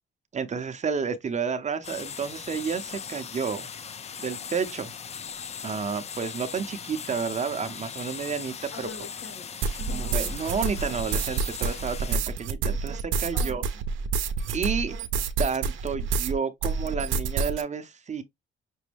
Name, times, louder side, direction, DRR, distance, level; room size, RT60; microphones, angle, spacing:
voice 1, 0.3-3.7 4.2-4.9 5.6-8.9 9.9-13.6 14.5-15.0 15.4-18.2, right 6 dB, 35° right, 0.7 m, -31 dB
sound 1, 1.8-12.2, left 7 dB, 35° left, 0.4 m, -39 dB
voice 2, 8.7-10.3 13.3-13.8, left 4 dB, 65° left, 1.7 m, -43 dB
sound 2, 9.6-16.3 16.6-17.6, right 5 dB, 80° right, 0.7 m, -28 dB
6.1 x 2.1 x 3.4 m
cardioid pair, 90°, 20 cm